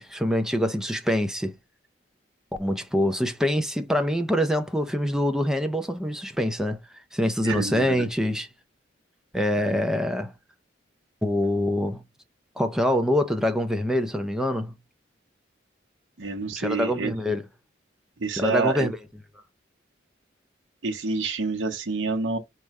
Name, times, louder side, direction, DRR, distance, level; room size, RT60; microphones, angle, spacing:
voice 1, 0.0-1.6 2.6-6.8 7.1-8.5 9.3-10.3 11.2-12.0 12.6-14.8 16.6-17.4 18.4-18.9, left 1 dB, 5° right, 0.5 m, -25 dB
voice 2, 7.4-8.1 9.6-9.8 16.2-17.1 18.2-18.9 20.8-22.4, right 4 dB, 80° right, 0.8 m, -28 dB
4.9 x 2.2 x 4.1 m
head